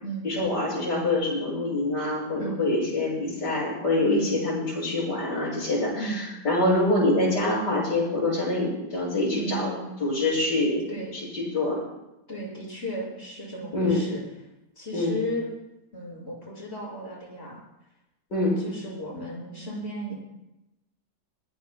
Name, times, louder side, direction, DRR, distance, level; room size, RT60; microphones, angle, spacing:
voice 1, 0.2-9.7 10.0-10.9 11.1-11.8 13.7-14.0 14.9-15.2 18.3-18.6, left 2 dB, 75° left, -5 dB, 7.1 m, -25 dB
voice 2, 4.0-4.4 5.9-6.3 9.3-10.0 10.9-11.2 12.3-14.2 14.8-15.5 15.9-17.6 18.6-20.1, right 1 dB, 35° left, -4 dB, 6.2 m, -35 dB
22.0 x 17.5 x 2.2 m, 0.93 s
omnidirectional pair, 1.9 m